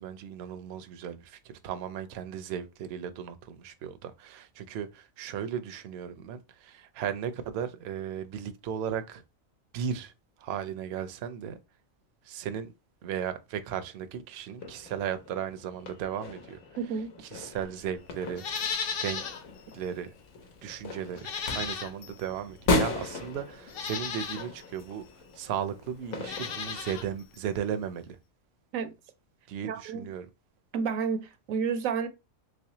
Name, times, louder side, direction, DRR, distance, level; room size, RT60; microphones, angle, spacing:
voice 1, 0.0-9.2 9.7-10.1 10.4-11.6 12.2-12.7 13.0-16.6 17.3-18.4 19.0-19.2 19.7-20.1 20.6-25.0 25.3-28.2 29.5-30.3, right 8 dB, 65° right, 0.7 m, -36 dB
sound 1, 14.6-27.1, left 3 dB, 90° left, 1.3 m, -36 dB
voice 2, 16.8-17.1 28.7-28.9 29.6-30.1 30.7-32.1, right 6 dB, 80° right, 1.0 m, -30 dB
Livestock farm animals working animals, 18.3-19.4 19.8-19.9 21.1-22.2 23.0-23.1 23.7-24.5 26.1-27.1 27.3-27.4, left 6 dB, 60° left, 0.6 m, -35 dB
3.2 x 3.2 x 2.8 m
omnidirectional pair, 1.4 m